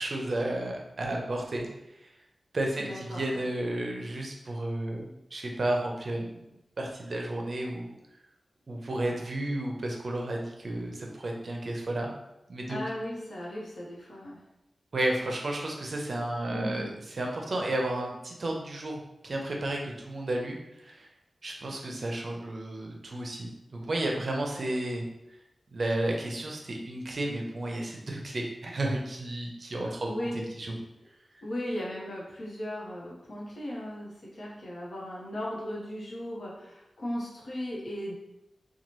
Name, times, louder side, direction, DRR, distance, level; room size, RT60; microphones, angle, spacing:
voice 1, 0.0-1.7 2.5-6.4 6.8-8.0 8.7-12.1 12.5-12.8 14.9-16.9 17.2-20.6 20.8-21.1 21.4-25.0 25.7-30.3 30.6-30.7, right 1 dB, 55° right, 0 dB, 0.5 m, -32 dB
voice 2, 2.8-3.5 12.7-14.4 16.5-16.9 29.8-30.4 31.4-38.1, left 1 dB, 70° left, -5 dB, 0.9 m, -37 dB
2.9 x 2.3 x 3.0 m, 0.89 s
wide cardioid pair, 90°, 0 cm